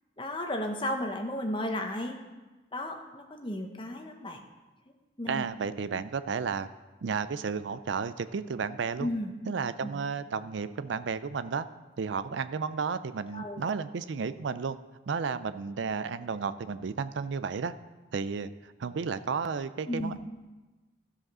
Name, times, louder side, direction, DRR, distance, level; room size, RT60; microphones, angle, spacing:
voice 1, 0.2-2.2 2.7-4.4 5.2-5.4 9.0-9.3 9.8-9.9 13.3-13.7 19.9-20.2, left 1 dB, 25° left, 4 dB, 0.9 m, -34 dB
voice 2, 5.3-6.7 7.0-9.1 9.5-11.7 12.0-14.8 15.1-17.7 18.1-20.2, right 5 dB, 70° right, 13 dB, 0.4 m, -32 dB
13.0 x 5.0 x 6.1 m, 1.2 s
head